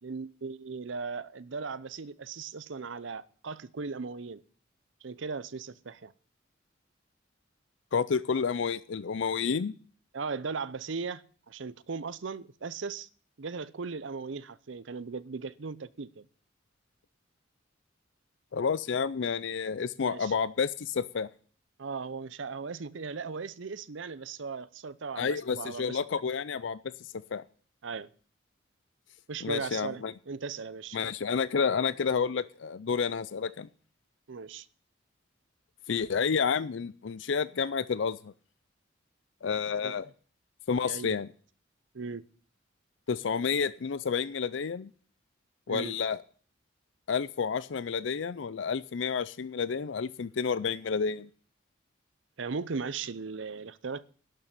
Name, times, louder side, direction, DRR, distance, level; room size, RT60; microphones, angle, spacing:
voice 1, 0.0-4.4 5.0-6.1 10.1-13.1 13.4-16.2 20.0-20.3 21.8-26.0 27.8-28.1 29.3-31.0 34.3-34.7 39.8-40.1 40.8-41.1 41.9-42.2 45.7-45.9 52.4-54.0, right 4 dB, 75° right, 0.7 m, -38 dB
voice 2, 7.9-9.7 18.5-21.3 25.1-26.8 27.3-27.4 29.4-30.1 30.9-33.7 35.9-38.3 39.4-40.1 40.7-41.3 43.1-44.9 45.7-46.2 47.1-51.3, left 6 dB, 70° left, 0.5 m, -30 dB
11.5 x 6.7 x 9.0 m
head